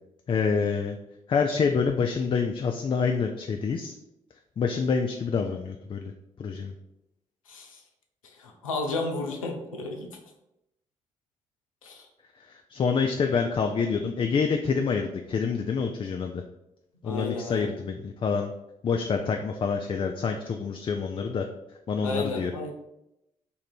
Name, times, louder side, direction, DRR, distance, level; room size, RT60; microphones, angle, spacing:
voice 1, 0.3-1.0 1.3-3.9 4.6-6.1 6.4-6.7 12.5-16.4 17.0-18.5 18.8-21.5 21.9-22.5, left 5 dB, 30° left, 4 dB, 0.4 m, -27 dB
voice 2, 7.5-7.8 8.2-10.2 11.8-12.1 17.0-17.8 22.0-22.7, left 3 dB, 90° left, 2 dB, 0.5 m, -33 dB
3.1 x 2.5 x 4.3 m, 0.88 s
hypercardioid pair, 40°, 17 cm